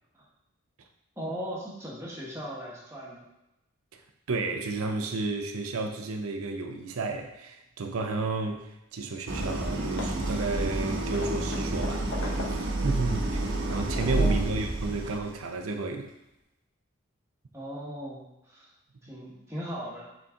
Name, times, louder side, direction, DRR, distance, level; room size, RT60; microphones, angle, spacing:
voice 1, 1.2-3.2 14.0-14.5 17.5-18.7 19.0-20.1, equal, 15° right, -5 dB, 1.3 m, -38 dB
voice 2, 4.3-16.1, right 3 dB, 90° right, 4 dB, 0.6 m, -32 dB
Hammer / Wood, 9.1-9.2 9.4-9.6 10.0-12.8 13.3-14.3, left 4 dB, 80° left, 1.1 m, -42 dB
Idling, 9.3-15.4, right 2 dB, 70° right, 1.0 m, -29 dB
6.8 x 4.0 x 3.7 m, 0.90 s
head